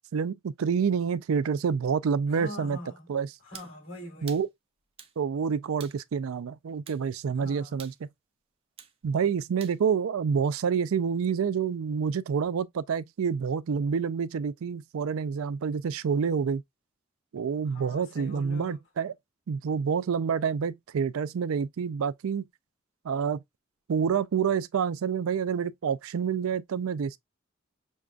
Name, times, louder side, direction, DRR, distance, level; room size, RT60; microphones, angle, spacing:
voice 1, 0.1-2.8 3.1-3.3 4.2-4.5 5.2-7.9 9.0-16.6 17.3-19.1 19.5-22.5 23.0-23.4 23.9-27.2, right 6 dB, 85° right, 0.4 m, -28 dB
voice 2, 2.3-3.1 3.4-4.4 7.4-7.8 17.6-18.8, left 1 dB, 80° left, 2.9 m, -43 dB
sound 1, 3.5-3.7 4.3-4.5 5.0-5.2 5.8-6.0 6.9-7.0 7.8-8.0 8.8-9.0 9.6-9.8, right 7 dB, 30° right, 0.5 m, -46 dB
6.2 x 2.3 x 2.4 m
head